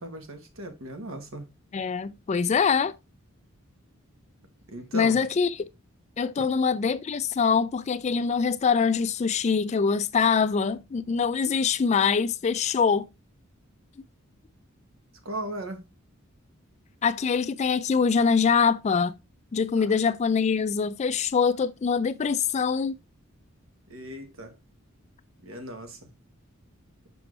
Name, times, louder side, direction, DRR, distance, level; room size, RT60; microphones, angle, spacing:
voice 1, 0.0-1.5 4.7-5.2 6.4-6.5 15.2-15.8 19.8-19.9 23.9-24.6 25.4-26.1, right 1 dB, 70° right, 1.3 m, -37 dB
voice 2, 1.7-2.9 4.9-5.6 6.2-13.1 17.0-19.2 19.5-23.0, left 5 dB, 30° left, 0.3 m, -24 dB
5.9 x 5.3 x 3.2 m
head